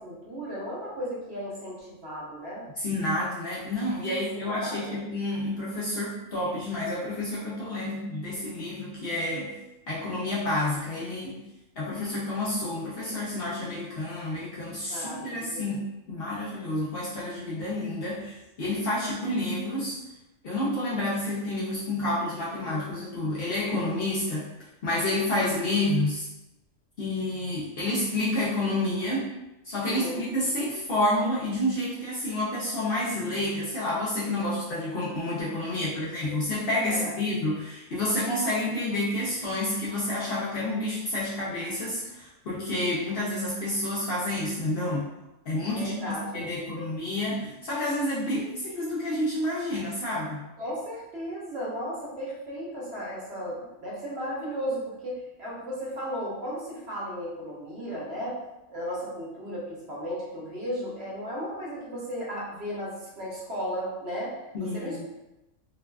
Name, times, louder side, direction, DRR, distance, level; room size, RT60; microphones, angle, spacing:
voice 1, 0.0-2.6 4.1-5.0 14.9-15.6 29.9-30.3 35.7-36.4 36.9-37.1 45.8-46.9 50.6-58.4 58.7-65.0, equal, 60° right, -6 dB, 1.0 m, -35 dB
voice 2, 2.8-9.6 9.9-11.4 11.8-20.0 20.4-24.5 24.8-26.3 27.0-29.3 29.6-45.1 45.5-50.4 64.5-65.0, left 1 dB, 60° left, -7 dB, 0.6 m, -29 dB
2.5 x 2.3 x 2.2 m, 0.95 s
omnidirectional pair, 1.3 m